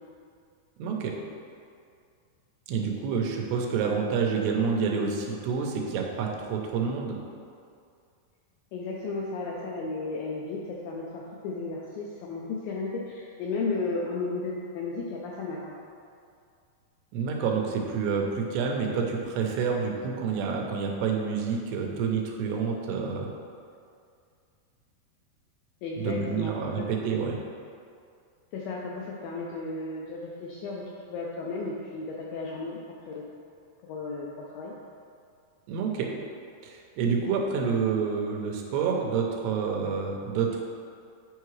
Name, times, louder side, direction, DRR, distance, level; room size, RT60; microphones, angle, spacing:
voice 1, 0.8-1.1 2.7-7.2 17.1-23.3 26.0-27.4 35.7-36.1 36.6-40.6, right 5 dB, 85° right, 1 dB, 2.8 m, -28 dB
voice 2, 8.7-15.7 25.8-26.9 28.5-32.8 33.1-33.3 33.8-34.7, left 3 dB, 80° left, -3 dB, 2.0 m, -34 dB
8.9 x 4.6 x 3.2 m, 2.3 s
omnidirectional pair, 4.7 m